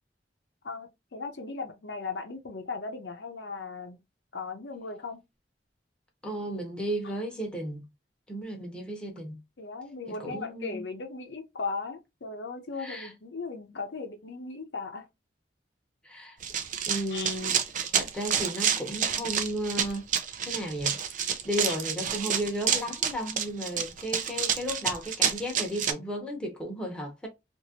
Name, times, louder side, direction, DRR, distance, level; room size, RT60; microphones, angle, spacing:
voice 1, 0.6-4.0 4.3-5.2 9.6-15.1 17.1-17.4 21.7-21.8, left 4 dB, 70° left, 0.7 m, -37 dB
voice 2, 6.2-7.8 8.3-9.4 10.2-10.8 12.8-13.1 16.0-16.4 16.9-17.6 17.9-20.0 20.4-27.3, equal, 5° left, 0.9 m, -34 dB
Run, 16.4-25.9, right 8 dB, 45° right, 0.5 m, -29 dB
2.9 x 2.5 x 2.8 m
head